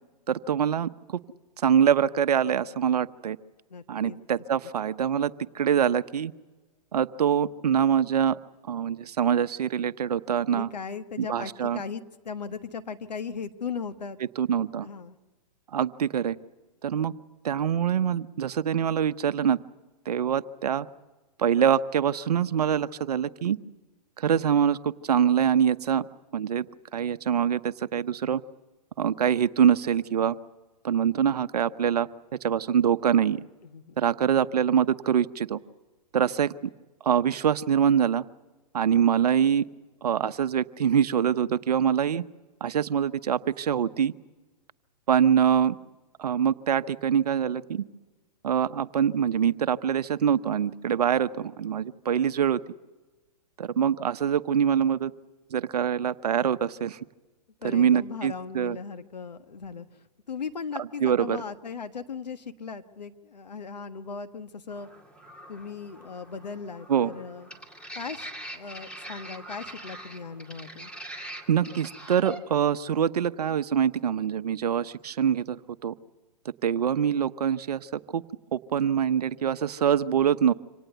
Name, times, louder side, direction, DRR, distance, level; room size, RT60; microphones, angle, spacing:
voice 1, 0.3-0.9 1.6-3.4 3.9-6.3 6.9-8.4 8.7-10.7 11.2-11.8 14.4-14.9 15.7-16.4 16.8-17.1 17.4-19.6 20.1-20.9 21.4-23.6 24.2-26.1 26.3-26.7 26.9-28.4 29.0-30.3 30.8-32.1 32.4-33.4 34.0-35.6 36.1-36.5 37.0-38.2 38.7-39.6 40.0-42.2 42.6-44.1 45.1-45.8 46.2-47.8 48.4-52.6 53.6-55.1 55.5-57.0 57.6-58.8 60.8-61.4 66.9-67.1 71.5-75.9 76.6-78.2 78.5-80.5, right 8 dB, 70° right, 14 dB, 0.9 m, -24 dB
voice 2, 3.7-4.2 10.5-14.2 14.8-15.2 33.6-34.1 57.6-64.9 65.5-67.5 67.9-70.9, left 5 dB, 85° left, 9 dB, 1.5 m, -38 dB
sound 1, 64.7-72.4, right 1 dB, 5° left, 2.4 m, -43 dB
25.5 x 18.5 x 8.1 m, 1.2 s
hypercardioid pair, 125°, 21 cm